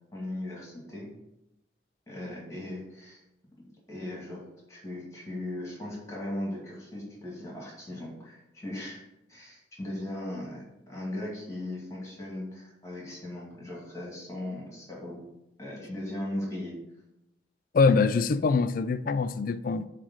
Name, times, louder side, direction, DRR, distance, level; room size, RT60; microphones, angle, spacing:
voice 1, 0.1-1.1 2.1-3.2 3.9-4.4 4.7-15.2 15.6-16.8, left 1 dB, 15° left, 2.2 m, -38 dB
voice 2, 17.7-19.9, left 4 dB, 45° left, 0.3 m, -24 dB
7.2 x 3.3 x 6.2 m
head